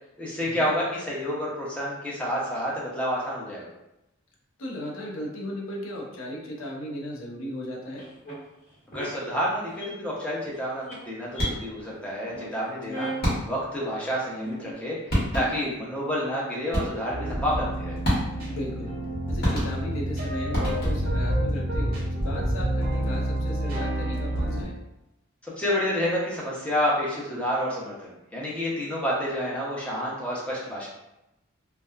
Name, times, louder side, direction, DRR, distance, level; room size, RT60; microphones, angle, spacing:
voice 1, 0.2-3.7 8.9-13.1 13.5-14.9 15.3-18.0 25.6-30.9, equal, 5° left, -6 dB, 0.6 m, -29 dB
voice 2, 4.6-8.1 12.9-13.1 18.5-18.9 19.3-24.7, equal, 70° left, -1 dB, 0.6 m, -36 dB
sound 1, 8.0-8.3 8.9-9.1 9.6-9.9 10.3-10.6 10.8-10.9 11.3-11.5 11.9-12.0 12.3-12.6 12.9-13.2 13.9-14.0 14.3-14.7, right 1 dB, 35° left, 1.2 m, -35 dB
sound 2, 11.3-11.8 13.2-13.7 14.8-14.9 15.1-15.7 16.7-17.2 18.0-18.6 19.4-20.1 20.5-21.2, equal, 50° left, 1.1 m, -28 dB
sound 3, 17.1-24.6, right 1 dB, 45° right, 0.6 m, -28 dB
2.7 x 2.1 x 2.3 m, 0.91 s
head